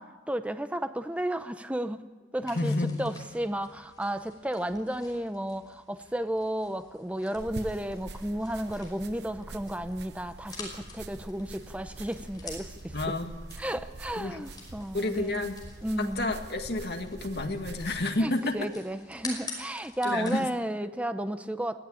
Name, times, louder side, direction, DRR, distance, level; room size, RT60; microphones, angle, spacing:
voice 1, 0.0-2.0 2.3-13.1 13.6-15.5 15.8-16.3 18.2-21.8, right 1 dB, 5° right, 10 dB, 0.7 m, -33 dB
sound 1, 2.4-20.5, left 3 dB, 20° left, 5.4 m, -48 dB
voice 2, 2.6-3.0 12.9-13.3 14.2-14.4 14.9-15.6 16.0-18.6 20.0-20.5, left 2 dB, 60° left, 4 dB, 2.0 m, -30 dB
sound 2, 7.4-18.1, right 2 dB, 65° right, 0.9 m, -45 dB
20.5 x 15.0 x 8.6 m, 1.3 s
head